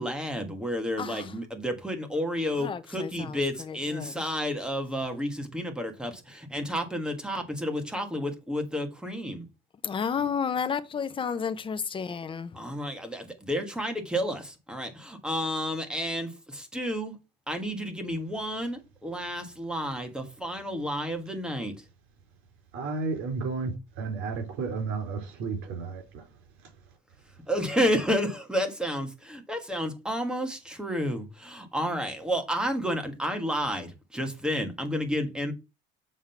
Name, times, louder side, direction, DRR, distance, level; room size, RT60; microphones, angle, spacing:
voice 1, 0.0-9.4 12.5-17.2 17.5-21.7 27.5-35.5, equal, 5° right, 1.5 m, -31 dB
voice 2, 1.0-1.3 2.6-3.4 3.7-4.2 9.8-12.5, left 6 dB, 25° left, 0.8 m, -32 dB
voice 3, 22.7-26.3, right 4 dB, 75° right, 3.9 m, -32 dB
7.4 x 3.7 x 5.6 m
cardioid pair, 140°, 21 cm